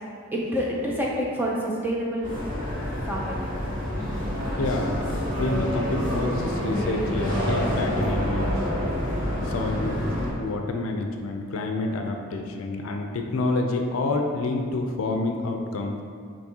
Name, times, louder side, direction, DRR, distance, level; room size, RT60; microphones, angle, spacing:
voice 1, 0.3-2.3 3.1-3.4, equal, 10° right, -4 dB, 0.5 m, -27 dB
sound 1, 2.2-10.3, equal, 50° right, 1.4 m, -27 dB
voice 2, 4.6-8.5 9.4-16.0, left 2 dB, 75° left, 3 dB, 0.4 m, -28 dB
7.1 x 2.7 x 2.8 m, 2.2 s
head